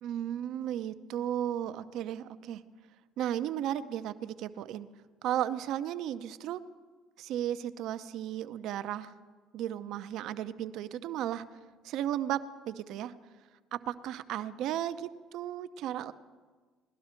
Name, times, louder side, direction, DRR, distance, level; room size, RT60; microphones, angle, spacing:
voice 1, 0.0-2.6 3.2-4.9 5.2-6.6 7.2-9.1 9.5-11.4 11.8-13.1 13.7-16.1, right 11 dB, 70° right, 12 dB, 0.6 m, -34 dB
18.5 x 12.0 x 4.4 m, 1.4 s
supercardioid pair, 85°, 0 cm